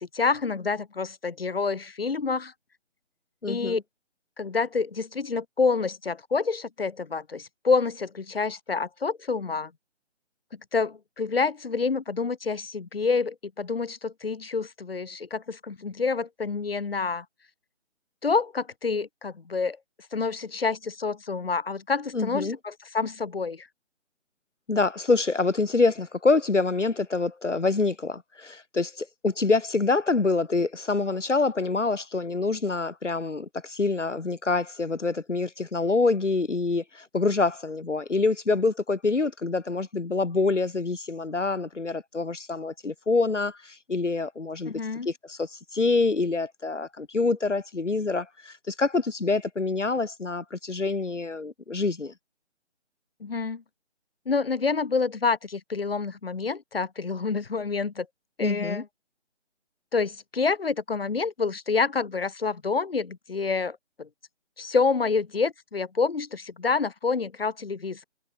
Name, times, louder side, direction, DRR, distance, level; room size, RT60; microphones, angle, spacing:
voice 1, 0.0-2.5 3.5-3.8 4.4-9.7 10.7-17.2 18.2-19.8 20.1-23.7 44.6-45.1 53.2-53.6 54.2-58.1 58.4-58.9 59.9-64.1 64.6-68.0, left 4 dB, 55° left, 1.7 m, -28 dB
voice 2, 3.4-3.8 22.1-22.6 24.7-44.8 45.0-52.1 58.4-58.8, left 3 dB, 80° left, 1.4 m, -26 dB
figure-of-eight pair, 155°, 35 cm